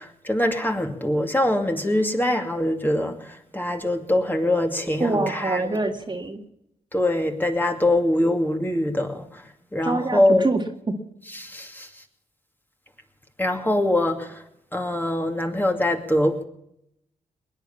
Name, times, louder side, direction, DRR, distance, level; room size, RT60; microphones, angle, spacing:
voice 1, 0.0-5.8 6.9-9.4 9.7-10.5 11.3-11.9 13.4-14.4 14.7-16.4, left 1 dB, 15° left, 4 dB, 2.5 m, -23 dB
voice 2, 5.0-6.4 9.8-11.0, right 2 dB, 30° right, 4 dB, 1.9 m, -25 dB
20.5 x 9.6 x 7.2 m, 0.77 s
cardioid pair, 55°, 15 cm